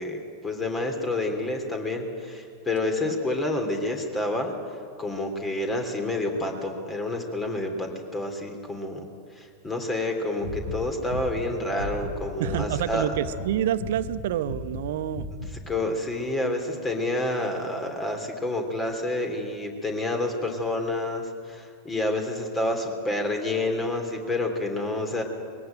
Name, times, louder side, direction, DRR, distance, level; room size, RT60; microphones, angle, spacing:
voice 1, 0.0-4.5 5.0-9.1 9.3-13.1 15.5-25.2, left 2 dB, 15° left, 5 dB, 3.2 m, -29 dB
sound 1, 10.4-12.9 13.1-13.5 13.8-14.2 14.4-14.8 15.1-15.5, left 2 dB, 60° left, 7.4 m, -35 dB
voice 2, 12.4-15.3, right 11 dB, 55° right, 14 dB, 0.8 m, -27 dB
21.5 x 17.0 x 9.1 m, 2.2 s
figure-of-eight pair, 90°, 0 cm